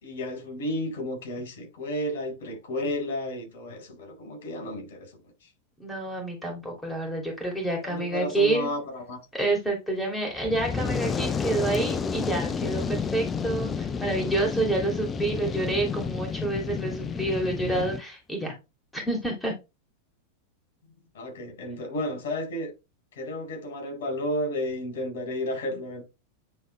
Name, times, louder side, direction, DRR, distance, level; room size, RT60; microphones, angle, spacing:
voice 1, 0.0-5.1 7.8-9.2 21.1-22.7 23.2-26.0, left 1 dB, 65° left, 4.9 m, -32 dB
voice 2, 5.8-8.7 9.3-18.5 18.9-19.5, right 2 dB, 5° left, 2.9 m, -28 dB
Fire, 10.3-18.0, left 5 dB, 25° left, 0.6 m, -30 dB
9.7 x 3.9 x 3.3 m
hypercardioid pair, 100°, 0 cm